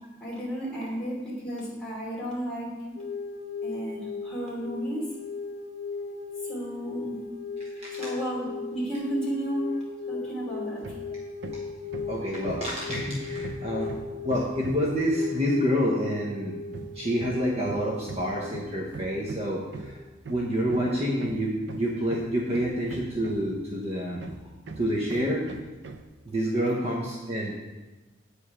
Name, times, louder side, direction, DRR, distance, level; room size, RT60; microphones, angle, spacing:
voice 1, 0.2-2.7 3.6-5.0 6.4-7.2 7.9-9.7 10.1-10.9, right 1 dB, 5° left, -7 dB, 2.8 m, -33 dB
sound 1, 3.0-19.9, left 4 dB, 45° left, 1.1 m, -37 dB
voice 2, 7.6-8.0 11.5-11.6 12.1-13.9 14.2-16.5 16.8-24.2 24.8-25.5 26.3-27.5, equal, 30° right, -4 dB, 1.0 m, -28 dB
Hammer, 10.8-11.1 11.4-15.0 16.7-23.7 24.2-26.1, right 3 dB, 60° right, 0.6 m, -41 dB
8.7 x 5.0 x 5.6 m, 1.2 s
head